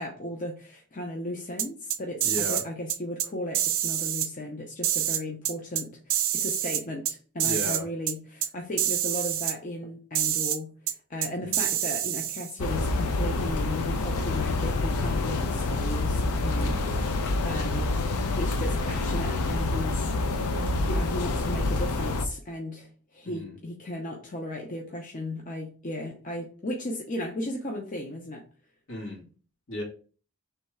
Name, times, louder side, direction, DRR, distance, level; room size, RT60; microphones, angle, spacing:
voice 1, 0.0-18.0 18.3-28.4, left 1 dB, 35° left, 0.6 m, -36 dB
sound 1, 1.6-2.6 2.9-3.3 3.5-4.3 4.8-5.8 6.1-7.1 7.4-7.8 8.1-8.2 8.4-8.5 8.8-9.5 10.1-10.6 10.9-11.0 11.2-12.5, right 11 dB, 60° right, 0.4 m, -27 dB
voice 2, 2.2-2.6 7.4-7.9 11.5-11.6 16.6-16.9 23.3-23.6 28.9-29.2 29.7-29.8, equal, 70° left, 1.9 m, -35 dB
sound 2, 12.6-22.3, left 2 dB, 90° left, 0.6 m, -27 dB
3.3 x 3.1 x 4.7 m
head